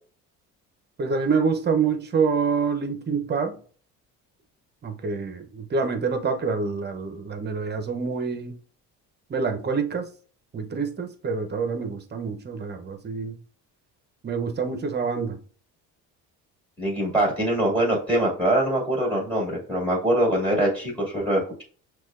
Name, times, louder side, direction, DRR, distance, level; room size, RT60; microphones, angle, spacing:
voice 1, 1.0-3.6 4.8-8.6 9.3-10.1 10.5-13.4 14.2-15.4, right 5 dB, 30° right, 0.7 m, -26 dB
voice 2, 16.8-21.6, right 1 dB, 5° left, 2.0 m, -23 dB
6.0 x 2.4 x 2.5 m
cardioid pair, 100°, 37 cm